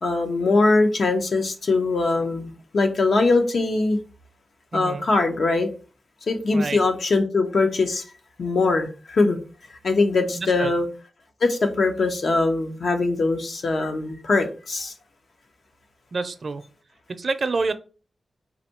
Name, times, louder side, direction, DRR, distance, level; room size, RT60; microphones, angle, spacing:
voice 1, 0.0-4.0 4.7-5.7 6.3-8.0 8.4-9.4 9.8-10.9 11.4-14.9, left 3 dB, 70° left, 4 dB, 0.9 m, -22 dB
voice 2, 4.7-5.1 6.5-6.8 10.3-10.7 16.1-16.6 17.2-17.7, right 3 dB, 60° right, 10 dB, 0.5 m, -27 dB
4.1 x 2.7 x 4.4 m, 0.36 s
wide cardioid pair, 95°, 0 cm